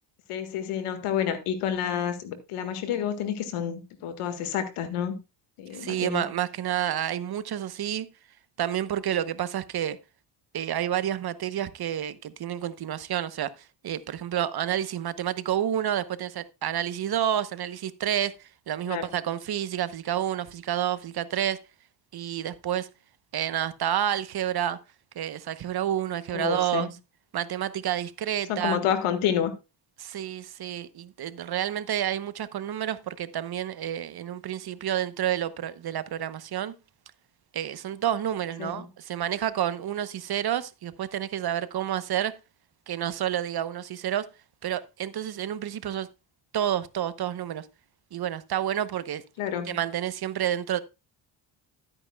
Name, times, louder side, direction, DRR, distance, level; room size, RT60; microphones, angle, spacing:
voice 1, 0.3-5.2 5.6-6.3 18.9-19.2 26.3-26.9 28.5-29.5 38.6-38.9 49.4-49.8, left 9 dB, 85° left, 1.8 m, -29 dB
voice 2, 5.7-8.1 8.6-10.0 10.5-21.6 22.1-22.9 23.3-24.8 25.2-26.9 27.3-28.8 30.0-36.7 37.5-42.3 42.9-44.3 44.6-46.1 46.5-47.7 48.1-49.2 49.7-50.8, right 10 dB, 50° right, 0.9 m, -29 dB
13.0 x 8.8 x 2.3 m
cardioid pair, 80°, 50 cm